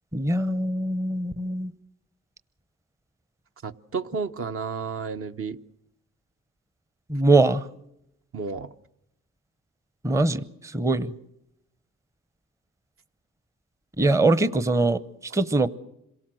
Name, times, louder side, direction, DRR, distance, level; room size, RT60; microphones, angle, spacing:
voice 1, 0.1-1.7 7.1-7.7 10.0-11.1 14.0-15.7, right 2 dB, 10° right, 0.8 m, -22 dB
voice 2, 3.6-5.6 8.3-8.7, right 5 dB, 45° right, 0.9 m, -31 dB
26.5 x 18.0 x 7.7 m
cardioid pair, 90°, 30 cm